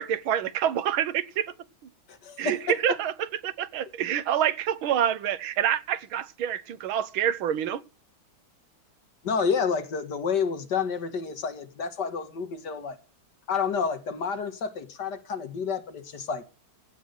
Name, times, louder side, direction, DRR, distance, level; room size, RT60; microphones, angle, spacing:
voice 1, 0.0-1.5 2.4-3.1 3.4-7.8, right 10 dB, 90° right, 1.8 m, -27 dB
voice 2, 2.1-2.7 9.2-13.0 13.5-16.4, left 6 dB, 55° left, 2.1 m, -29 dB
16.5 x 6.2 x 8.1 m
omnidirectional pair, 2.2 m